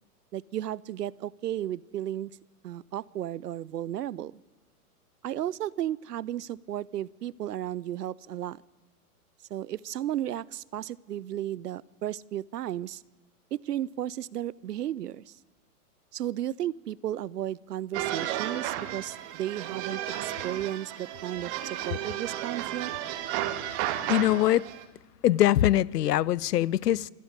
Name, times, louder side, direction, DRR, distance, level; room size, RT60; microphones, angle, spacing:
voice 1, 0.3-2.3 2.6-4.3 5.2-8.6 9.5-13.0 13.5-15.3 16.1-22.9, right 12 dB, 90° right, 0.8 m, -34 dB
sound 1, 17.9-24.8, right 12 dB, 45° right, 2.1 m, -33 dB
voice 2, 24.1-24.7 25.2-27.1, left 13 dB, 85° left, 0.7 m, -23 dB
26.0 x 13.0 x 9.6 m
hypercardioid pair, 130°, 46 cm